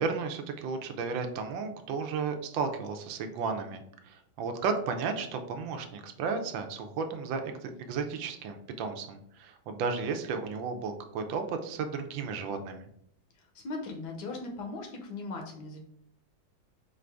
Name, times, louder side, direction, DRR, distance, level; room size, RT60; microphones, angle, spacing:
voice 1, 0.0-12.9, right 5 dB, 80° right, 6 dB, 1.3 m, -34 dB
voice 2, 13.4-15.8, left 3 dB, 70° left, 2 dB, 1.2 m, -39 dB
4.6 x 2.5 x 3.3 m, 0.70 s
omnidirectional pair, 2.1 m